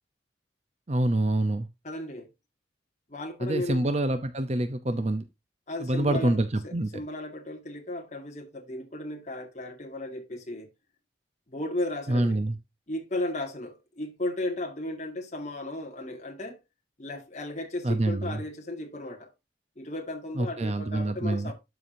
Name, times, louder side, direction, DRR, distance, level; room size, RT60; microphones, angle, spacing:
voice 1, 0.9-1.7 3.4-5.2 5.8-7.0 12.1-12.6 17.8-18.4 20.4-21.5, right 1 dB, 35° right, 0.7 m, -26 dB
voice 2, 1.8-2.3 3.1-3.9 5.7-6.4 6.6-10.7 11.5-12.4 12.9-16.6 17.0-19.3 19.8-21.5, left 1 dB, 40° left, 1.9 m, -35 dB
12.5 x 4.9 x 2.7 m
head